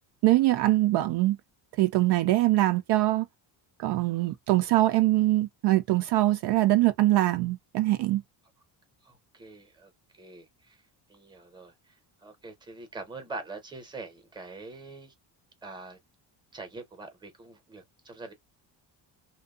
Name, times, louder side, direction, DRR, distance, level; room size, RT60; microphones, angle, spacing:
voice 1, 0.2-1.4 1.8-3.3 3.8-8.2, right 16 dB, 65° right, 0.5 m, -23 dB
voice 2, 9.0-10.8 11.1-15.1 15.6-16.0 16.5-18.3, right 3 dB, 10° right, 0.8 m, -44 dB
2.6 x 2.3 x 2.4 m
cardioid pair, 125°, 44 cm